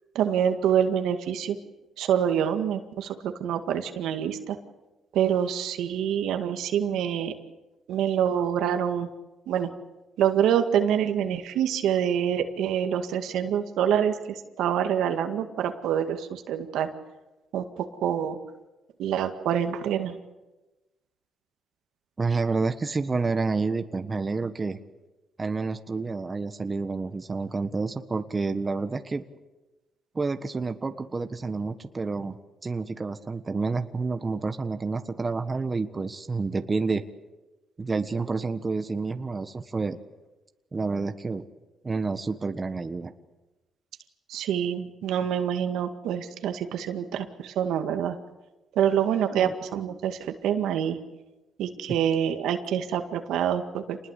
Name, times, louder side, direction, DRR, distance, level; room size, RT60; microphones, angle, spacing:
voice 1, 0.2-1.6 2.0-4.6 5.1-7.3 7.9-9.1 9.5-9.7 10.2-16.9 17.5-18.4 19.0-20.2 44.3-48.2 48.8-51.0 51.6-54.0, right 9 dB, 85° right, 7 dB, 2.0 m, -26 dB
voice 2, 22.2-24.8 25.4-29.2 30.1-32.4 32.6-37.0 37.8-40.0 40.7-41.5 41.8-43.1 49.3-49.5, right 4 dB, 30° right, 8 dB, 1.4 m, -29 dB
27.5 x 20.5 x 8.3 m, 1.1 s
cardioid pair, 90°, 0 cm